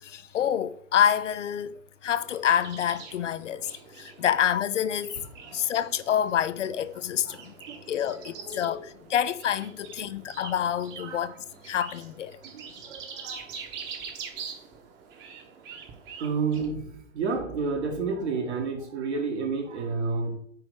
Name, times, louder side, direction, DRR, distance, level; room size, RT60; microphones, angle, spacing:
voice 1, 0.0-3.7 4.0-5.2 5.5-7.5 7.9-11.4 11.7-12.4, left 9 dB, 65° left, 0.6 m, -27 dB
sound 1, 2.0-16.7, right 6 dB, 30° right, 1.3 m, -44 dB
voice 2, 5.4-5.9 7.3-8.9 10.0-10.2 11.0-11.4 12.4-13.5 16.2-20.4, right 4 dB, 60° right, 1.9 m, -32 dB
9.0 x 3.1 x 5.3 m
figure-of-eight pair, 110°, 39 cm